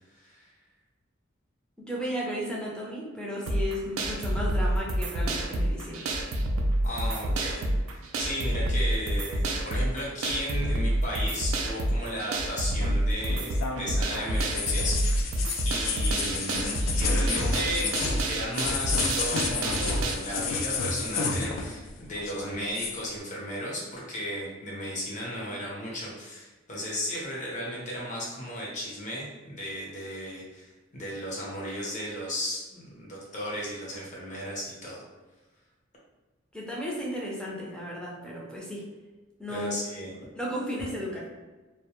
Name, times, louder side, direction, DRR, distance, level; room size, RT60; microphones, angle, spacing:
voice 1, 0.1-0.5 6.8-7.6 7.9-15.3 15.6-17.9 18.2-35.0 39.5-40.1, equal, 40° left, -4 dB, 0.7 m, -35 dB
voice 2, 1.8-6.1 36.5-38.9 39.4-39.8 40.3-41.3, equal, 5° left, -4 dB, 0.5 m, -34 dB
sound 1, 3.5-20.1, right 1 dB, 90° right, 0.4 m, -28 dB
sound 2, 12.8-21.9 22.2-23.0, left 5 dB, 85° left, 0.3 m, -31 dB
2.1 x 2.0 x 2.9 m, 1.2 s
head